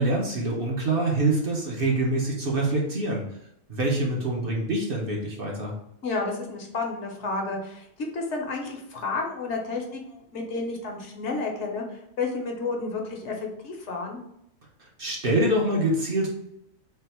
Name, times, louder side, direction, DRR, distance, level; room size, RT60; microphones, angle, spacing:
voice 1, 0.0-3.2 3.7-5.7 15.0-16.3, right 2 dB, 50° right, -2 dB, 0.9 m, -25 dB
voice 2, 6.0-7.9 8.1-14.2, left 3 dB, 65° left, 1 dB, 1.1 m, -31 dB
3.4 x 2.5 x 4.2 m, 0.77 s
omnidirectional pair, 1.3 m